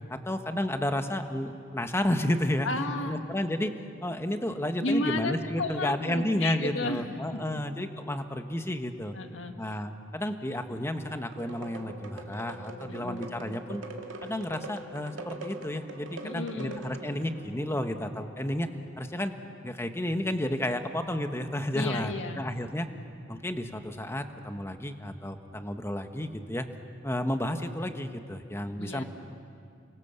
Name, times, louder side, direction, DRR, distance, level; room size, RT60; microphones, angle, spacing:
voice 1, 0.1-2.7 3.0-3.7 4.0-9.1 9.6-13.8 14.2-18.7 19.0-19.3 19.6-22.9 23.3-26.7 27.0-29.0, left 1 dB, 15° left, 7 dB, 1.2 m, -31 dB
voice 2, 2.6-3.2 4.8-7.6 9.1-9.5 12.9-13.3 16.2-16.8 21.7-22.4 28.8-29.0, left 2 dB, 75° left, 5 dB, 1.8 m, -33 dB
sound 1, 10.6-19.2 24.6-24.7, left 1 dB, 55° left, 4.1 m, -52 dB
sound 2, 11.3-17.4, right 2 dB, 85° right, 2.2 m, -43 dB
29.5 x 24.0 x 7.0 m, 2.4 s
head